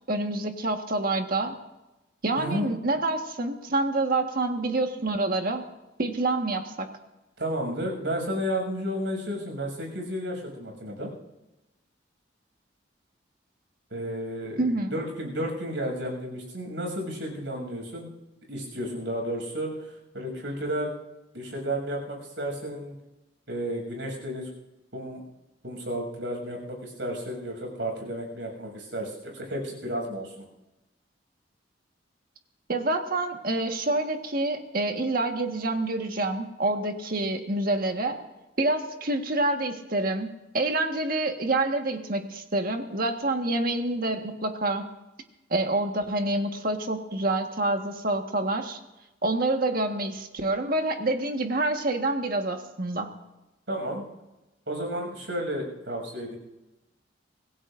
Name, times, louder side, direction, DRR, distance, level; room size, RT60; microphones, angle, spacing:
voice 1, 0.1-1.5 2.2-5.7 6.0-6.9 14.6-14.9 32.7-38.2 38.6-44.9 45.5-48.8 49.2-53.1, right 2 dB, 50° right, 4 dB, 1.6 m, -27 dB
voice 2, 7.4-11.1 13.9-18.1 18.5-20.9 21.3-23.0 23.5-24.5 24.9-25.2 25.6-30.5 53.7-54.1 54.7-56.4, equal, 75° right, 1 dB, 7.0 m, -32 dB
25.5 x 18.0 x 2.6 m, 0.99 s
head